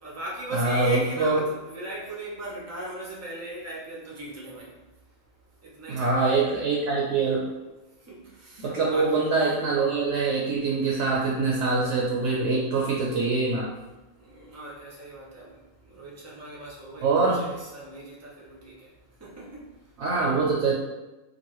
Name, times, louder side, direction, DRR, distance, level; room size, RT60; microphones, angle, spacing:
voice 1, 0.0-4.7 5.6-6.3 8.1-9.3 14.3-15.5 15.9-18.7 19.2-19.6, right 1 dB, 25° right, -4 dB, 0.4 m, -38 dB
voice 2, 0.5-1.4 5.9-7.5 8.6-13.7 17.0-17.4 20.0-20.7, right 3 dB, 70° right, -4 dB, 0.8 m, -24 dB
3.0 x 2.4 x 2.9 m, 1.1 s
omnidirectional pair, 1.4 m